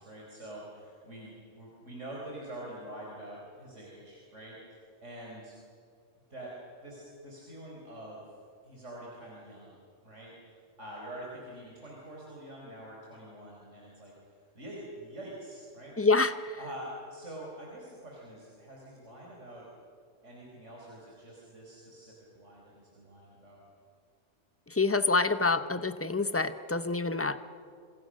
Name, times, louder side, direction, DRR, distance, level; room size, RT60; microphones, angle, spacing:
voice 1, 0.0-4.7 5.0-5.6 6.3-8.4 8.6-9.7 10.0-14.1 14.5-16.0 16.6-19.7 20.2-23.6, right 1 dB, 90° right, -3 dB, 5.0 m, -46 dB
voice 2, 16.0-16.5 24.7-27.4, left 3 dB, 15° left, 11 dB, 0.8 m, -27 dB
27.5 x 27.5 x 6.5 m, 2.3 s
omnidirectional pair, 1.2 m